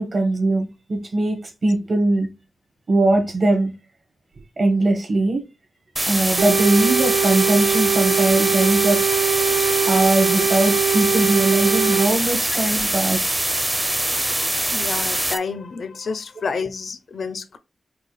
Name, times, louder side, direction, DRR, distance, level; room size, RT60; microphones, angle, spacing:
voice 1, 0.0-2.3 2.9-3.7 4.6-5.4 6.1-9.0 9.9-13.3, right 2 dB, 55° right, 1.3 m, -20 dB
sound 1, 6.0-15.4, right 1 dB, 15° right, 0.6 m, -23 dB
sound 2, 6.4-12.1, right 8 dB, 90° right, 0.7 m, -22 dB
voice 2, 14.7-17.6, left 5 dB, 65° left, 0.5 m, -29 dB
4.5 x 2.2 x 3.2 m
wide cardioid pair, 90°, 0 cm